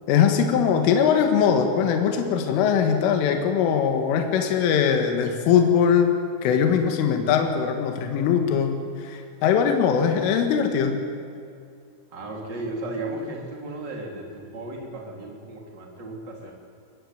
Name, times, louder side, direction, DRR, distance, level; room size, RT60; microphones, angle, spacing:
voice 1, 0.1-6.1 6.4-8.7 9.0-11.0, left 7 dB, 75° left, 5 dB, 4.2 m, -21 dB
voice 2, 12.1-16.5, right 2 dB, 25° right, 0 dB, 3.4 m, -35 dB
22.0 x 20.0 x 9.4 m, 2.3 s
omnidirectional pair, 6.0 m